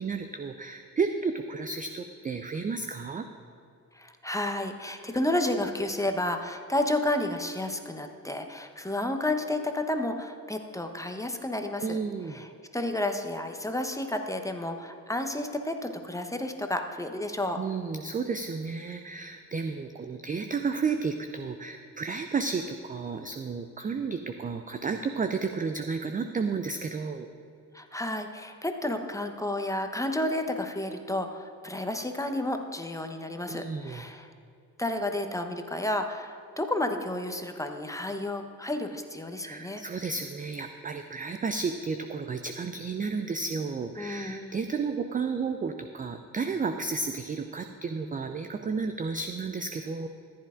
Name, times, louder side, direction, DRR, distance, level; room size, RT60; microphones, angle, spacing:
voice 1, 0.0-3.3 11.8-12.4 17.6-27.3 33.5-34.0 39.4-50.1, right 4 dB, 20° right, 8 dB, 0.5 m, -32 dB
voice 2, 3.9-12.0 12.3-17.6 27.7-34.3 34.8-39.8 44.0-44.6, left 1 dB, 5° left, 5 dB, 1.0 m, -31 dB
14.5 x 10.5 x 2.5 m, 2.4 s
figure-of-eight pair, 40°, 45 cm